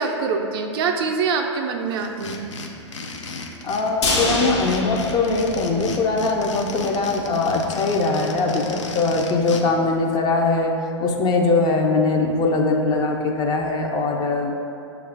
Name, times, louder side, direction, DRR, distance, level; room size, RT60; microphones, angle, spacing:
voice 1, 0.0-2.5, right 5 dB, 55° right, 3 dB, 0.4 m, -24 dB
sound 1, 1.9-9.6, left 4 dB, 85° left, 0.5 m, -35 dB
voice 2, 3.6-10.7 11.0-14.5, left 3 dB, 25° left, 1 dB, 0.4 m, -21 dB
sound 2, 4.0-6.2 6.5-6.6 6.9-7.0, left 2 dB, 65° left, 0.9 m, -26 dB
6.5 x 2.4 x 3.3 m, 2.6 s
hypercardioid pair, 110°, 15 cm